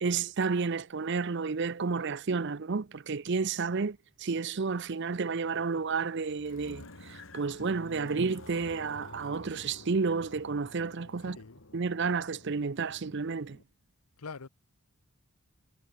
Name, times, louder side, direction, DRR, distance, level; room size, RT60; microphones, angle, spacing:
voice 1, 0.0-11.4 11.7-13.6, right 4 dB, 50° right, 0.6 m, -31 dB
sound 1, 5.1-13.6, left 2 dB, 60° left, 2.5 m, -51 dB
voice 2, 11.2-11.6 14.2-14.5, left 4 dB, 90° left, 1.0 m, -44 dB
head